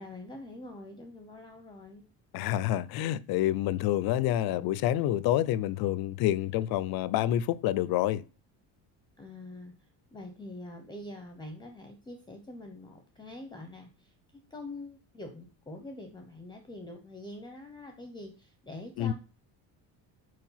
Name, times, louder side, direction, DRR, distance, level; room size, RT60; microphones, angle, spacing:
voice 1, 0.0-2.0 9.2-14.1 14.5-19.1, left 2 dB, 10° left, 0.7 m, -45 dB
voice 2, 2.3-8.2 19.0-19.1, left 13 dB, 65° left, 0.5 m, -28 dB
4.7 x 4.6 x 5.6 m
cardioid pair, 140°, 39 cm